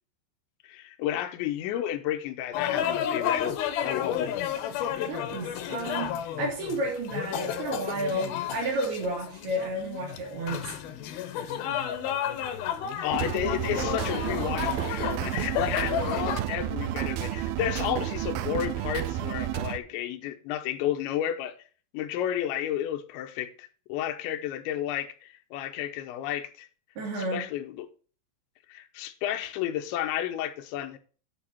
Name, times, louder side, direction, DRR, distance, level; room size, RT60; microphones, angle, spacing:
voice 1, 0.6-4.3 13.0-21.5 21.9-26.7 27.3-27.9 28.7-31.0, left 11 dB, 85° left, 3.2 m, -32 dB
sound 1, 2.5-16.4, left 9 dB, 70° left, 2.5 m, -32 dB
voice 2, 5.1-10.7 27.0-27.4, right 1 dB, 60° right, 4.8 m, -31 dB
sound 2, 13.1-19.8, right 12 dB, 90° right, 2.1 m, -31 dB
11.5 x 5.9 x 4.2 m
omnidirectional pair, 5.1 m